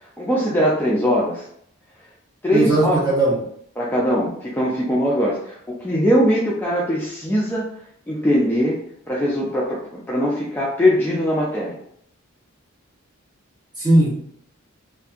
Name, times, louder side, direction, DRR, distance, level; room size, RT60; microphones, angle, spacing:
voice 1, 0.2-1.4 2.4-3.0 3.8-7.7 8.1-8.8 9.1-11.7, equal, 10° left, -5 dB, 0.3 m, -21 dB
voice 2, 2.5-3.4 13.8-14.1, right 2 dB, 20° right, -6 dB, 0.9 m, -17 dB
2.7 x 2.4 x 2.3 m, 0.69 s
head